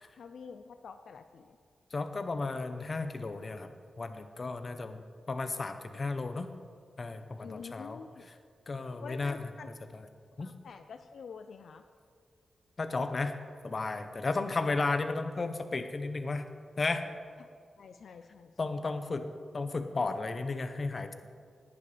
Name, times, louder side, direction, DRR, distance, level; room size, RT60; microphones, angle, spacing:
voice 1, 0.2-1.5 7.4-8.3 9.0-9.7 10.4-11.8 17.8-18.5, left 5 dB, 80° left, 8 dB, 0.4 m, -47 dB
voice 2, 1.9-3.7 4.0-6.5 7.0-8.0 8.7-9.5 9.9-10.1 10.4-10.5 12.8-13.3 13.6-16.4 16.8-17.0 18.6-21.1, left 3 dB, 45° left, 8 dB, 0.8 m, -34 dB
19.0 x 11.0 x 3.4 m, 2.3 s
cardioid pair, 85°, 0 cm